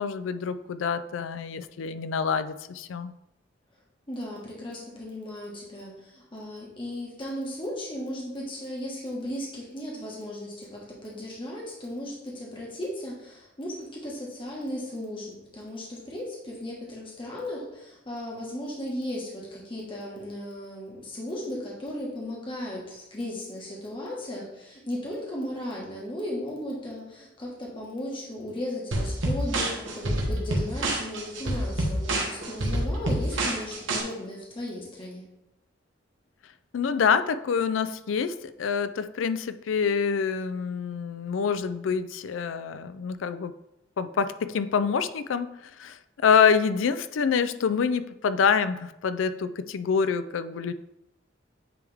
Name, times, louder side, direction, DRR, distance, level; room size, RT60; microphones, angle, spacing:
voice 1, 0.0-3.1 36.7-43.5 44.0-45.5 45.8-50.7, left 6 dB, 90° left, 12 dB, 0.4 m, -26 dB
voice 2, 4.1-35.2, left 1 dB, 25° left, -4 dB, 1.5 m, -36 dB
sound 1, 28.9-34.0, right 1 dB, 90° right, 1.3 m, -27 dB
9.4 x 3.5 x 3.5 m, 0.89 s
head